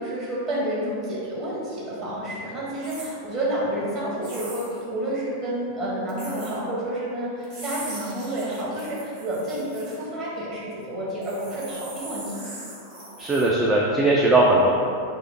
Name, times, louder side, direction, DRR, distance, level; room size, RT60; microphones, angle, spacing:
voice 1, 0.0-12.4, right 1 dB, 35° right, -6 dB, 1.3 m, -29 dB
sound 1, 2.8-3.1 4.2-4.8 6.1-6.5 7.4-9.9 11.2-13.5, right 2 dB, 50° right, 1.4 m, -40 dB
voice 2, 13.2-14.7, right 2 dB, 15° right, -3 dB, 0.4 m, -19 dB
4.9 x 2.1 x 4.0 m, 2.5 s
figure-of-eight pair, 90°, 0 cm